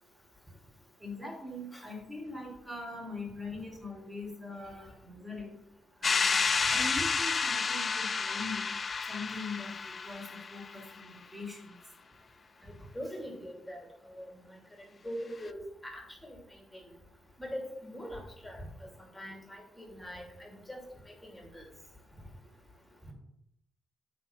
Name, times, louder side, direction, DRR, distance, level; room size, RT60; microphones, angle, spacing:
voice 1, 1.0-5.6 6.0-8.7 9.1-11.7, left 2 dB, 10° right, -2 dB, 2.8 m, -42 dB
sound 1, 6.0-10.8, left 5 dB, 35° left, 0.4 m, -30 dB
voice 2, 13.0-13.8 14.2-14.3 15.0-16.0 17.4-18.6 19.2-19.4 19.8-20.8 21.3-21.6, equal, 5° left, 1 dB, 2.4 m, -41 dB
8.3 x 4.3 x 5.6 m, 0.79 s
cardioid pair, 90°, 0 cm